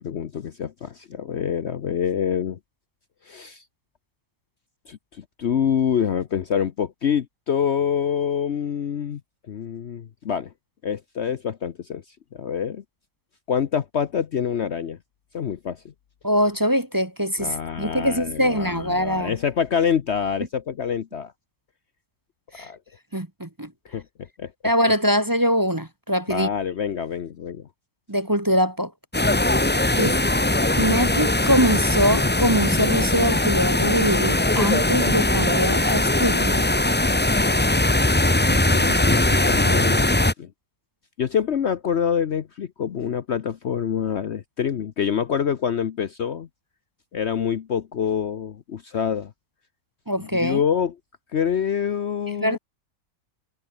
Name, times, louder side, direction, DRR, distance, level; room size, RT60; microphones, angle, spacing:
voice 1, 0.0-2.6 3.3-3.6 4.9-9.2 9.5-10.5 10.8-12.0 12.3-12.8 13.5-15.0 15.3-15.9 17.4-21.3 22.6-22.8 23.9-24.0 24.4-24.5 26.3-27.6 30.0-30.1 38.5-40.1 40.4-40.5 41.2-46.5 47.1-49.3 50.2-51.0 51.3-52.6, left 8 dB, 55° left, 1.0 m, -26 dB
voice 2, 16.2-19.3 22.5-22.7 23.1-23.7 24.6-26.5 28.1-28.9 30.0-30.2 30.8-36.6 50.1-50.6 52.4-52.6, equal, 15° right, 1.3 m, -23 dB
sound 1, 29.1-40.3, left 2 dB, 10° left, 0.6 m, -20 dB
omnidirectional pair, 1.6 m